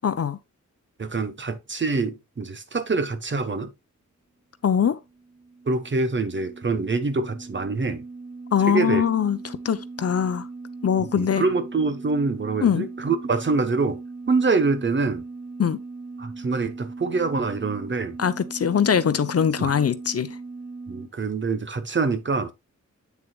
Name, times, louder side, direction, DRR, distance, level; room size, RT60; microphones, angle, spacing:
voice 1, 0.0-0.4 4.6-5.0 8.5-10.5 10.8-11.5 12.6-12.9 15.6-15.8 18.2-20.4, left 8 dB, 50° left, 0.7 m, -22 dB
voice 2, 1.0-3.7 5.7-8.0 8.7-9.0 11.0-14.0 14.3-15.2 16.2-18.2 19.6-19.8 20.9-22.5, right 3 dB, 40° right, 1.1 m, -25 dB
sound 1, 4.9-21.1, right 3 dB, 70° right, 2.8 m, -39 dB
8.4 x 7.0 x 2.3 m
wide cardioid pair, 135°, 30 cm